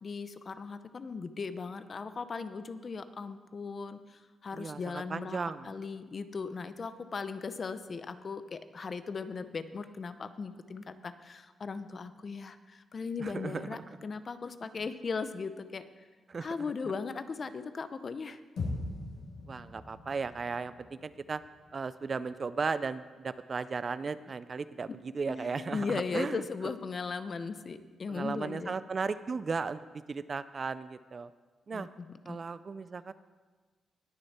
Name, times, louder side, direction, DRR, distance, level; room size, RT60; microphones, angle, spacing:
voice 1, 0.0-5.4 5.6-16.0 16.4-18.4 25.7-28.7 31.7-32.4, left 4 dB, 40° left, 11 dB, 0.6 m, -38 dB
voice 2, 4.5-5.7 13.2-13.8 16.3-16.5 19.5-21.4 21.7-26.4 28.1-31.3 31.7-31.9 32.3-33.1, right 4 dB, 40° right, 15 dB, 0.4 m, -36 dB
sound 1, 18.6-22.9, left 2 dB, 70° left, 3.9 m, -41 dB
sound 2, 25.3-27.7, left 2 dB, 15° left, 2.3 m, -49 dB
19.5 x 6.6 x 4.3 m, 1.4 s
cardioid pair, 105°, 0 cm